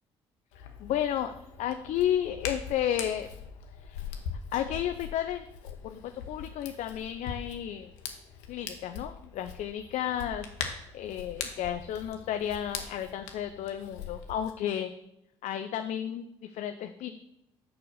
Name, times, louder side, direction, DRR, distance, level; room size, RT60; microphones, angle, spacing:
Hands, 0.5-14.5, left 7 dB, 90° left, 1.0 m, -42 dB
voice 1, 0.6-3.3 3.8-4.0 4.5-7.9 8.5-10.5 10.9-14.9 15.4-17.2, left 10 dB, 65° left, 8 dB, 0.5 m, -32 dB
6.7 x 5.6 x 6.4 m, 0.85 s
supercardioid pair, 65°, 13 cm